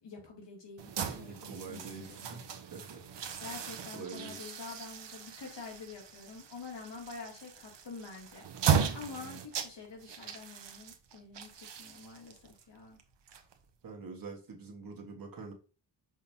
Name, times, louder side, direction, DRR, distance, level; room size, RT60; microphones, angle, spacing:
voice 1, 0.0-1.8 2.1-2.4 3.4-13.0, left 4 dB, 80° left, -1 dB, 2.6 m, -47 dB
sound 1, 0.8-13.9, right 7 dB, 80° right, 1.0 m, -37 dB
voice 2, 1.0-3.0 3.9-4.4 13.8-15.5, right 4 dB, 55° right, 2 dB, 1.7 m, -45 dB
6.3 x 5.3 x 2.8 m, 0.34 s
wide cardioid pair, 170°, 43 cm